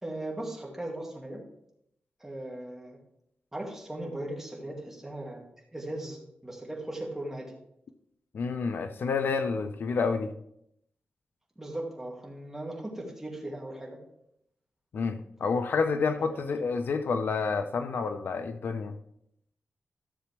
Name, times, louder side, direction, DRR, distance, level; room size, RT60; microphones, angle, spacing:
voice 1, 0.0-1.4 2.2-3.0 3.5-5.4 5.7-7.5 11.6-14.0 16.2-16.5, right 1 dB, 10° right, -2 dB, 2.2 m, -38 dB
voice 2, 8.3-10.3 14.9-18.9, left 5 dB, 65° left, 8 dB, 0.6 m, -29 dB
13.5 x 7.0 x 3.4 m, 0.75 s
wide cardioid pair, 150°, 4 cm